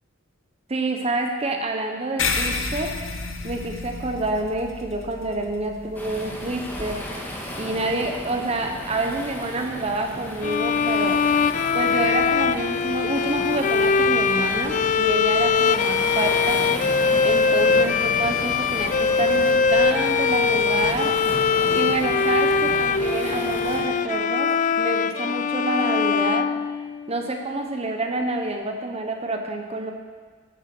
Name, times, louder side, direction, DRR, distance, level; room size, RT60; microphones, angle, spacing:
voice 1, 0.7-2.9 3.4-7.0 7.5-11.2 11.7-16.6 17.2-21.1 21.7-26.5 27.1-29.9, right 2 dB, 30° right, 3 dB, 0.9 m, -27 dB
sound 1, 2.2-7.0, left 4 dB, 75° left, 1.2 m, -31 dB
Waves surf, 5.9-23.8, equal, 10° left, 1.9 m, -34 dB
sound 2, 10.4-27.3, left 5 dB, 40° left, 0.3 m, -22 dB
12.5 x 9.9 x 6.1 m, 1.5 s
head